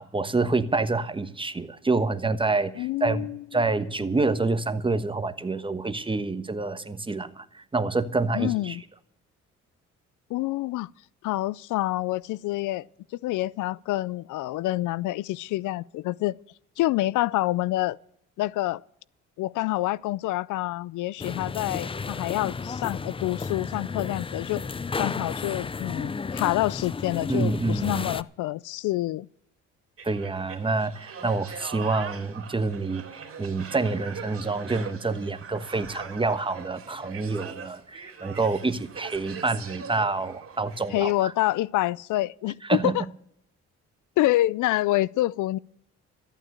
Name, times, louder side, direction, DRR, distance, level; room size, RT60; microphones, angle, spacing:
voice 1, 0.0-3.2 3.5-8.8 27.3-28.1 30.0-41.3 42.7-42.9, right 3 dB, 15° right, 1.2 m, -27 dB
voice 2, 2.8-3.6 8.3-8.8 10.3-10.9 11.2-12.9 13.2-16.4 16.8-18.0 18.4-18.8 19.4-24.6 25.0-29.3 40.9-43.0 44.2-45.6, left 17 dB, 80° left, 0.4 m, -27 dB
sound 1, 21.2-28.2, left 4 dB, 20° left, 0.5 m, -33 dB
sound 2, 30.0-41.1 41.4-41.6, right 6 dB, 45° right, 2.7 m, -42 dB
14.0 x 9.1 x 8.0 m
cardioid pair, 90°, 30 cm